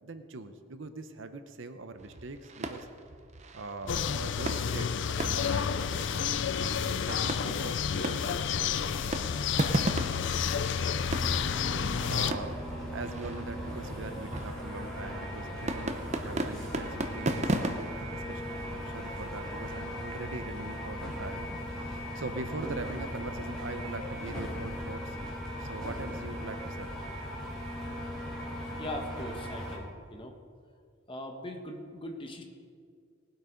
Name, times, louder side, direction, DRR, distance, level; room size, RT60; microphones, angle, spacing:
voice 1, 0.0-2.9 3.5-6.3 6.8-9.2 12.0-12.6 12.9-25.2 25.6-26.9, right 3 dB, 65° right, 9 dB, 0.8 m, -42 dB
sound 1, 2.0-19.7, right 1 dB, 35° right, 0.8 m, -37 dB
sound 2, 3.9-12.3, left 7 dB, 60° left, 0.4 m, -30 dB
sound 3, 11.2-29.8, equal, 5° left, 3.4 m, -38 dB
voice 2, 28.8-30.4 31.1-32.4, left 1 dB, 25° left, 3 dB, 1.2 m, -40 dB
18.5 x 8.1 x 5.2 m, 2.2 s
head